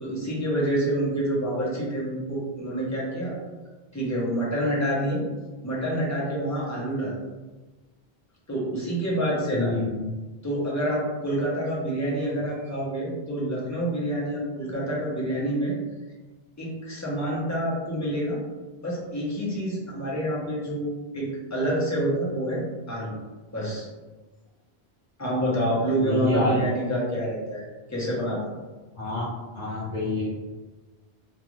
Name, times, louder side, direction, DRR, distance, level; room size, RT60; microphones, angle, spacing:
voice 1, 0.0-3.4 3.9-5.2 5.6-7.1 8.5-9.7 10.4-15.7 16.6-18.4 18.8-23.1 23.5-23.9 25.2-28.4, right 1 dB, 20° left, -5 dB, 0.6 m, -27 dB
voice 2, 9.5-10.1 26.0-26.6 29.0-29.2 29.5-30.3, left 2 dB, 55° left, -9 dB, 0.8 m, -27 dB
2.4 x 2.4 x 3.0 m, 1.2 s
omnidirectional pair, 1.1 m